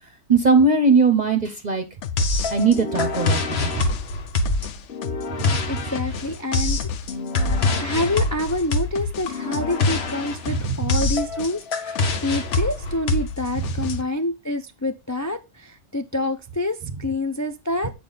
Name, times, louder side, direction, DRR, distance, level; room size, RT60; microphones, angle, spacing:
voice 1, 0.3-1.8 2.5-3.9 5.4-5.6 10.5-10.9 13.6-13.7, right 4 dB, 40° right, 0.9 m, -20 dB
sound 1, 2.0-12.8 13.1-14.0, left 8 dB, 80° left, 1.0 m, -34 dB
sound 2, 2.2-13.9, left 2 dB, 65° left, 1.2 m, -25 dB
voice 2, 5.7-6.9 7.8-17.9, left 1 dB, 30° left, 0.3 m, -27 dB
8.3 x 5.0 x 3.9 m
omnidirectional pair, 1.2 m